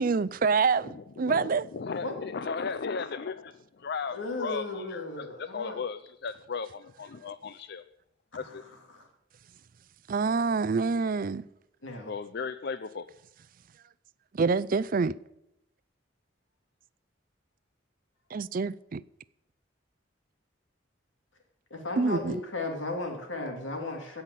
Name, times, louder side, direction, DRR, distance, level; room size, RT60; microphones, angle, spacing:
voice 1, 0.0-1.6 10.1-11.4 14.3-15.2 18.3-19.0 22.0-22.4, right 4 dB, 45° right, 0.4 m, -26 dB
voice 2, 0.9-7.8 8.3-8.6 12.1-13.1, left 5 dB, 60° left, 0.5 m, -36 dB
voice 3, 4.1-5.8 8.3-8.5 8.9-9.1 11.8-12.1 21.7-24.2, left 2 dB, 85° left, 3.2 m, -35 dB
16.5 x 5.7 x 9.9 m
head